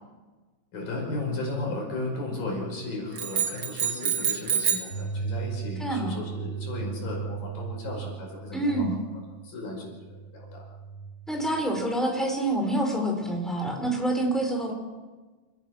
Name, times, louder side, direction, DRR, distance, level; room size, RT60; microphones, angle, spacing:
voice 1, 0.7-9.0 9.3-10.7, left 2 dB, 80° left, -1 dB, 6.9 m, -35 dB
sound 1, 3.2-5.0, right 7 dB, 45° right, 2.4 m, -27 dB
sound 2, 4.9-11.7, right 6 dB, 20° left, 5.9 m, -37 dB
voice 2, 5.8-6.2 8.5-9.0 11.3-14.7, right 1 dB, ahead, 1 dB, 4.1 m, -27 dB
28.5 x 17.0 x 6.4 m, 1.3 s
omnidirectional pair, 3.9 m